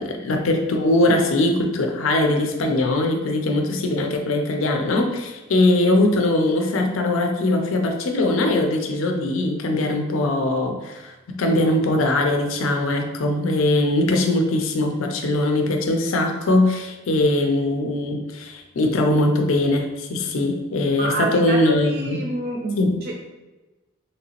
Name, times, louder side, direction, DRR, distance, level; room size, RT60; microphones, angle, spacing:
voice 1, 0.0-22.2 22.8-22.9, left 2 dB, 80° left, 3 dB, 0.5 m, -21 dB
voice 2, 21.0-23.1, right 2 dB, 50° right, -3 dB, 0.4 m, -28 dB
3.1 x 2.8 x 2.9 m, 1.1 s
head